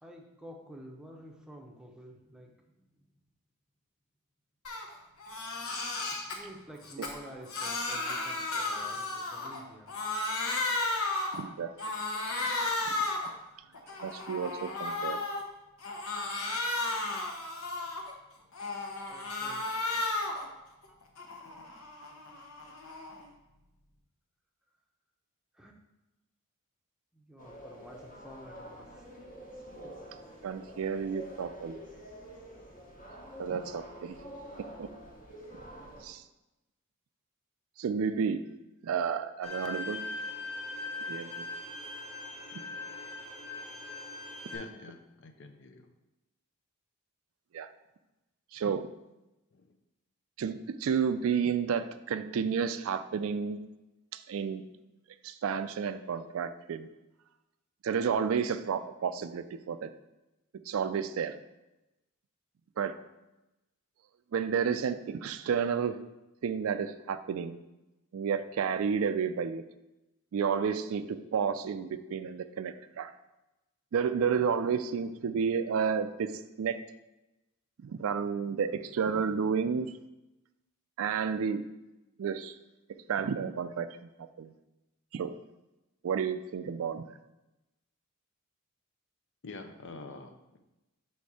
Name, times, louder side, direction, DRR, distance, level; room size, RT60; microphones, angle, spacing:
voice 1, 0.0-2.5 6.1-9.9 19.1-19.6 25.6-25.7 27.1-28.9 29.7-30.0, right 1 dB, 5° right, 0 dB, 0.7 m, -50 dB
Crying sobbing, 4.6-4.9 5.2-6.4 6.8-9.6 9.9-11.4 11.8-13.3 13.7-15.4 15.8-18.1 18.5-20.5 20.8-23.2, left 2 dB, 70° left, 1.0 m, -34 dB
voice 2, 11.3-11.7 12.9-13.0 14.0-15.2 30.4-31.8 33.4-34.2 34.8-34.9 36.0-36.2 37.8-38.4 38.8-40.0 41.1-41.4 47.5-47.7 48.5-48.9 50.4-53.6 54.1-54.6 55.2-56.9 57.8-59.9 60.7-61.4 62.8-63.0 64.3-66.0 66.4-67.6 68.1-69.6 70.3-73.1 73.9-76.3 76.6-76.8 77.8-79.9 81.0-81.6 82.2-82.6 83.1-83.9 84.2-84.5 85.1-85.3 86.0-87.0, right 6 dB, 65° right, 11 dB, 0.3 m, -31 dB
sound 1, 27.4-36.0, equal, 40° left, 1.3 m, -47 dB
Bowed string instrument, 39.4-44.6, left 3 dB, 90° left, 2.0 m, -40 dB
voice 3, 44.5-45.9 49.5-49.8 89.4-90.6, left 3 dB, 55° left, 6 dB, 0.6 m, -46 dB
5.8 x 4.3 x 4.7 m, 0.98 s
head